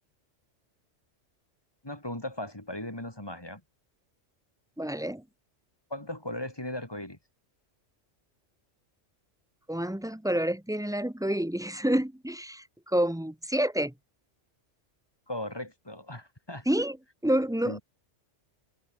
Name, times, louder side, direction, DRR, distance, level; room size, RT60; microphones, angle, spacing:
voice 1, 1.8-3.6 5.9-7.2 15.3-16.7 17.6-17.8, left 1 dB, 20° left, 4.2 m, -37 dB
voice 2, 4.8-5.2 9.7-13.9 16.7-17.0 17.2-17.8, right 1 dB, 5° right, 0.7 m, -28 dB
omnidirectional pair, 1.2 m